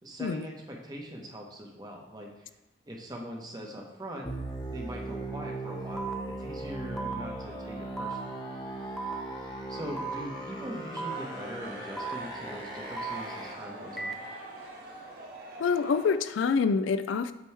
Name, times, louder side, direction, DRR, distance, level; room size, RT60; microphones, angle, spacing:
voice 1, 0.0-2.3 2.9-4.3 4.7-6.1 6.4-8.2 9.4-14.2, equal, 20° right, 0 dB, 0.9 m, -41 dB
sound 1, 4.2-13.5, right 1 dB, 25° left, 0.8 m, -38 dB
sound 2, 6.0-6.1 7.0-7.1 8.0-8.1 9.0-9.1 10.0-10.1 11.0-11.1 12.0-12.1 13.0-13.1 14.0-14.1, right 4 dB, ahead, 0.3 m, -35 dB
sound 3, 11.1-16.2, right 2 dB, 50° right, 1.4 m, -44 dB
voice 2, 15.6-17.3, left 5 dB, 85° left, 12 dB, 0.4 m, -26 dB
8.5 x 3.1 x 4.6 m, 0.99 s
head